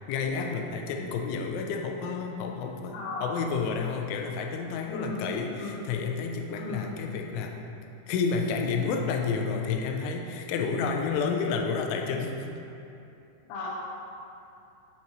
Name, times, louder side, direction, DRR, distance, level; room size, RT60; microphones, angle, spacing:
voice 1, 0.1-7.6 8.1-12.4, left 5 dB, 90° left, 3 dB, 3.1 m, -30 dB
voice 2, 2.9-3.3 4.9-5.8 6.5-6.9 13.5-13.7, left 2 dB, 75° left, -5 dB, 2.6 m, -36 dB
7.7 x 5.3 x 2.9 m, 2.7 s
omnidirectional pair, 5.4 m